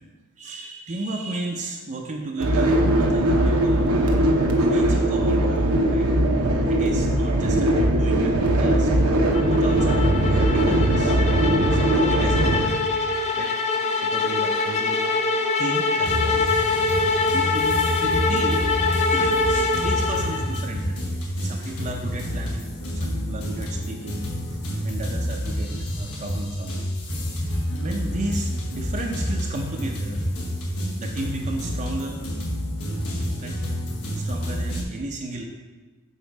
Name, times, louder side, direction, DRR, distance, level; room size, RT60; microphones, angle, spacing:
voice 1, 0.4-3.9 4.3-6.1 6.7-13.1 13.4-13.5 14.0-15.0 15.6-16.5 17.3-24.3 24.8-26.9 27.4-30.2 31.0-32.2 33.4-33.6 34.1-35.4, right 2 dB, 35° right, 1 dB, 0.6 m, -34 dB
sound 1, 2.4-12.6, right 1 dB, 80° right, 0.9 m, -20 dB
sound 2, 9.3-20.7, left 3 dB, 30° left, 0.5 m, -24 dB
sound 3, 16.1-34.8, equal, 70° left, 1.2 m, -28 dB
7.3 x 4.2 x 4.7 m, 1.3 s
head